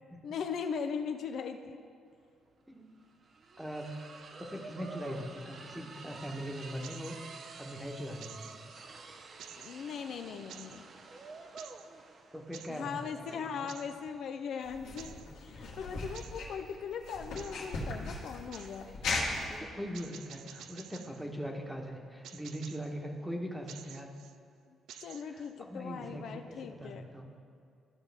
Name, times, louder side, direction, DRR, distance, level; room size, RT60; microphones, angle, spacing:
voice 1, 0.2-1.8 9.6-10.9 12.7-15.2 15.4-18.9 25.0-27.0, left 6 dB, 70° left, 6 dB, 0.5 m, -39 dB
sound 1, 2.1-2.2 2.5-21.3, right 4 dB, 50° right, 0.7 m, -51 dB
voice 2, 3.6-3.9 4.4-7.2 7.6-8.5 12.3-13.1 13.5-13.7 15.5-15.7 18.8-24.1 25.2-27.3, equal, 5° right, 2 dB, 1.2 m, -41 dB
sound 2, 6.8-7.5 8.2-8.9 9.4-10.0 10.5-10.8 11.6-11.9 12.5-12.8 13.7-14.0 15.0-15.3 16.1-16.5 17.4-17.7 18.5-18.8 19.9-21.2 22.2-22.9 23.7-24.4 24.9-25.5, right 9 dB, 80° right, 0.3 m, -51 dB
sound 3, 14.6-19.6, left 2 dB, 90° left, 1.6 m, -38 dB
14.5 x 5.7 x 3.4 m, 2.3 s
cardioid pair, 90°, 0 cm